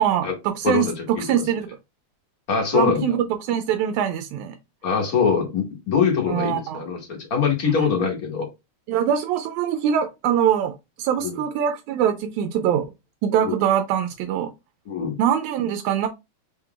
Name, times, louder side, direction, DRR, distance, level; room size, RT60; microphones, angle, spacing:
voice 1, 0.0-1.7 2.7-4.6 6.3-6.8 8.9-12.9 13.2-14.5 15.2-16.1, right 9 dB, 85° right, 2.0 m, -23 dB
voice 2, 0.6-1.4 2.5-3.2 4.8-8.5 11.2-11.4 13.4-13.6 14.9-15.2, left 6 dB, 50° left, 1.0 m, -23 dB
4.5 x 3.8 x 2.2 m
omnidirectional pair, 3.3 m